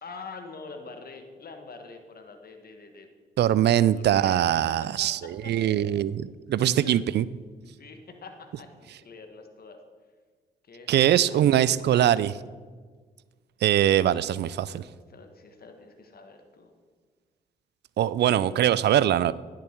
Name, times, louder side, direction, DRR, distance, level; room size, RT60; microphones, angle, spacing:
voice 1, 0.0-3.1 3.7-4.6 5.0-5.1 5.4-6.2 6.6-7.0 7.6-9.8 10.6-12.2 14.6-14.8 15.1-16.7, left 4 dB, 55° left, 6 dB, 1.4 m, -46 dB
voice 2, 3.4-5.2 5.5-7.3 10.9-12.3 13.6-14.8 18.0-19.3, right 11 dB, 65° right, 18 dB, 0.4 m, -22 dB
10.0 x 7.1 x 4.5 m, 1.5 s
supercardioid pair, 45°, 19 cm